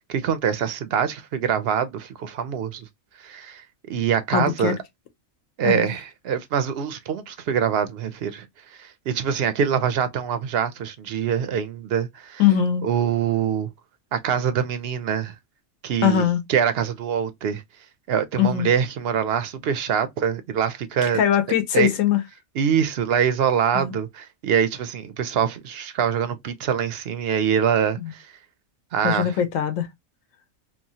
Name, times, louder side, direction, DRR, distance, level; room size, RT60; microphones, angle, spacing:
voice 1, 0.1-2.9 3.2-4.8 5.6-8.5 8.7-12.4 12.8-13.7 14.1-15.3 15.8-17.6 18.1-21.2 21.7-21.9 22.6-28.3 28.9-29.3, right 8 dB, 65° right, 0.6 m, -24 dB
voice 2, 4.3-4.7 5.6-5.9 12.4-12.9 16.0-16.4 18.4-18.7 21.1-22.2 23.7-23.9 28.0-28.1 29.0-29.9, left 9 dB, 75° left, 1.0 m, -21 dB
2.9 x 2.1 x 2.6 m
omnidirectional pair, 1.4 m